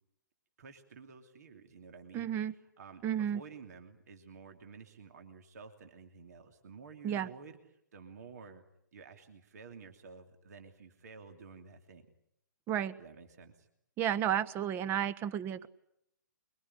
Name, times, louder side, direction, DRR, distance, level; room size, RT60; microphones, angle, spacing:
voice 1, 0.6-2.3 2.8-7.6 7.9-8.6 8.9-12.1 13.0-13.7, right 5 dB, 55° right, 7 dB, 2.9 m, -52 dB
voice 2, 2.1-2.5 3.0-3.4 7.0-7.3 12.7-12.9 14.0-15.7, right 10 dB, 20° right, 17 dB, 1.1 m, -32 dB
24.0 x 23.5 x 10.0 m, 0.75 s
figure-of-eight pair, 125°, 10 cm